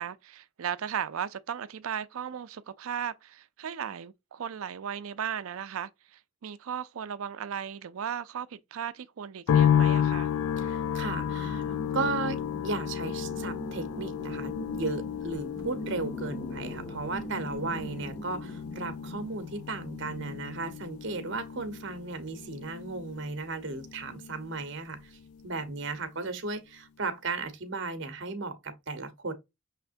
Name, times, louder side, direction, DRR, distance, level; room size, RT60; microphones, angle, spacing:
voice 1, 0.0-10.3, right 8 dB, 75° right, 0.4 m, -36 dB
sound 1, 9.5-24.7 25.0-25.9, left 8 dB, 90° left, 0.4 m, -32 dB
voice 2, 10.6-29.3, right 3 dB, 55° right, 0.9 m, -35 dB
sound 2, 11.2-20.4, equal, 30° left, 1.1 m, -43 dB
5.7 x 3.3 x 2.5 m
head